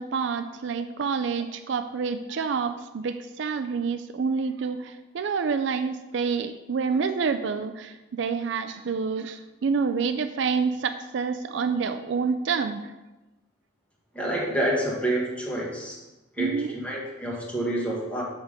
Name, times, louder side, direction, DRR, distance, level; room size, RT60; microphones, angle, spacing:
voice 1, 0.0-12.9 16.4-16.7, right 5 dB, 65° right, 9 dB, 0.4 m, -28 dB
voice 2, 14.1-16.0 16.4-18.2, right 1 dB, 5° left, -4 dB, 1.6 m, -28 dB
8.1 x 3.7 x 6.5 m, 1.1 s
head